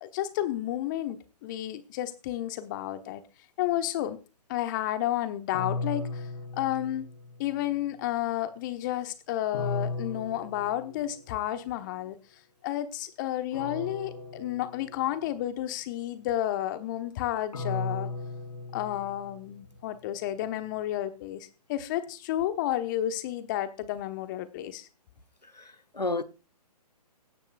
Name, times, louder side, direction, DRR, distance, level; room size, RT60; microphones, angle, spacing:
voice 1, 0.0-3.2 3.6-4.2 4.5-7.1 7.4-12.2 12.6-18.1 18.7-24.9, left 13 dB, 30° left, 1.1 m, -31 dB
sound 1, 5.5-7.6 9.5-11.4 13.5-15.4 17.5-19.7, left 3 dB, 65° left, 3.8 m, -36 dB
voice 2, 25.6-26.2, left 3 dB, 90° left, 1.0 m, -31 dB
16.5 x 10.0 x 2.4 m
figure-of-eight pair, 130°, 20 cm